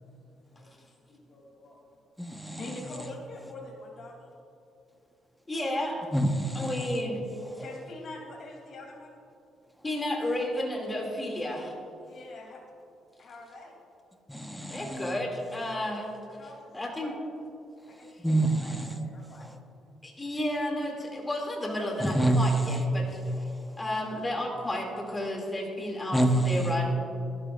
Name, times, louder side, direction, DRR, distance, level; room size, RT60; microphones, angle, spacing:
voice 1, 0.0-1.8 2.6-4.3 6.7-6.8 7.6-9.1 12.0-12.6 13.2-13.7 16.2-16.7 17.0-17.1 17.9-18.1 18.4-19.5, left 2 dB, 55° left, -2 dB, 3.2 m, -45 dB
voice 2, 2.2-3.1 6.1-7.0 7.5-7.6 14.3-15.2 18.2-19.1 19.4-19.6 22.0-22.8 23.5-23.8 26.1-26.7, right 1 dB, 5° left, 5 dB, 1.2 m, -27 dB
voice 3, 5.5-6.0 6.5-7.2 9.8-11.7 14.7-16.1 16.7-17.1 20.0-23.2 23.8-26.2 26.4-26.9, left 1 dB, 20° left, 0 dB, 2.7 m, -32 dB
21.5 x 12.5 x 2.6 m, 2.7 s
cardioid pair, 90°, 0 cm